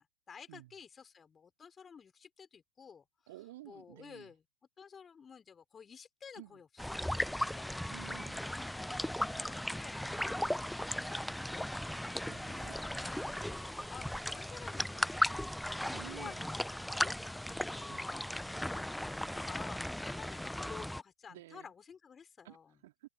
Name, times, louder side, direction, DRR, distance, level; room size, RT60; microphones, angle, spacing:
voice 1, 0.0-3.3 3.6-4.4 4.8-7.8 8.1-22.8, left 6 dB, 20° left, 5.6 m, -53 dB
voice 2, 3.3-4.3 6.3-6.6 7.8-8.4 12.3-12.8 15.9-16.5 17.9-18.0 21.3-21.7 22.4-22.6 22.8-23.1, right 16 dB, 55° right, 3.7 m, -52 dB
sound 1, 6.8-21.0, left 1 dB, ahead, 1.0 m, -37 dB
figure-of-eight pair, 90°, 0 cm